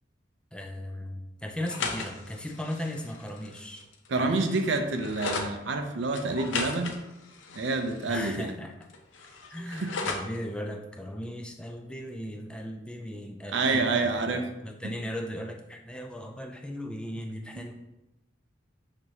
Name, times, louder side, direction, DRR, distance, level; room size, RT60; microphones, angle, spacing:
voice 1, 0.5-3.9 4.2-4.5 8.1-8.7 9.5-17.7, left 1 dB, 5° left, 3 dB, 0.3 m, -37 dB
sound 1, 1.6-5.5 6.1-8.5 8.8-10.4, left 4 dB, 80° left, 0.6 m, -37 dB
voice 2, 4.1-7.0 7.5-8.5 9.7-9.9 13.5-14.5, right 3 dB, 70° right, 5 dB, 0.5 m, -28 dB
6.1 x 2.9 x 2.7 m, 0.94 s
head